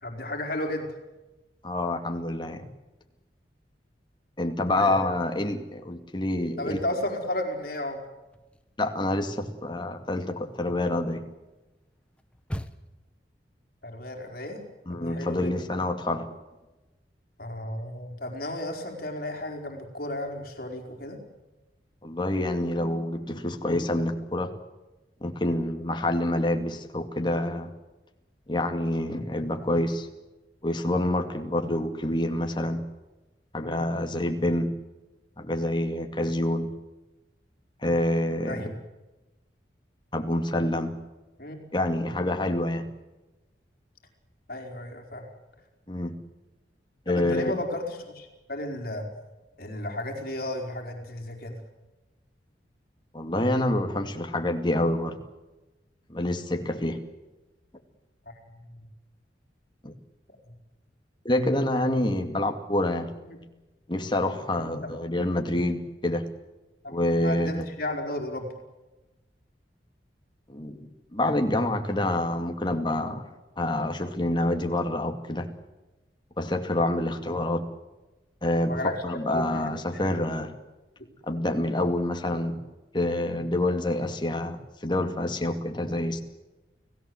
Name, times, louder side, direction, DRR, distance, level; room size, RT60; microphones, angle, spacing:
voice 1, 0.0-0.9 4.7-5.0 6.6-8.0 13.8-14.6 14.9-15.5 17.4-21.2 33.6-33.9 38.4-38.7 41.4-41.6 44.5-45.3 47.0-49.1 49.6-51.6 58.3-58.4 58.7-58.8 63.2-63.4 64.5-64.9 66.8-68.5 78.6-80.3 81.3-81.5, left 1 dB, 55° left, 3 dB, 4.6 m, -34 dB
voice 2, 1.6-2.7 4.4-6.8 8.8-11.3 14.9-16.3 22.0-24.5 25.2-27.7 28.5-30.1 30.6-32.8 33.5-34.8 35.4-36.7 37.8-38.7 40.1-41.0 41.7-42.9 45.9-46.2 47.1-47.6 53.1-55.2 56.1-57.0 59.8-59.9 61.2-63.1 63.9-66.2 66.9-67.7 70.5-73.3 73.6-75.5 76.4-77.7 78.4-80.5 81.3-82.6 82.9-86.2, left 1 dB, 25° left, 5 dB, 2.3 m, -27 dB
sound 1, 6.5-7.7 8.0-13.1, equal, 5° left, 1.1 m, -43 dB
29.5 x 17.5 x 8.0 m, 1.1 s
head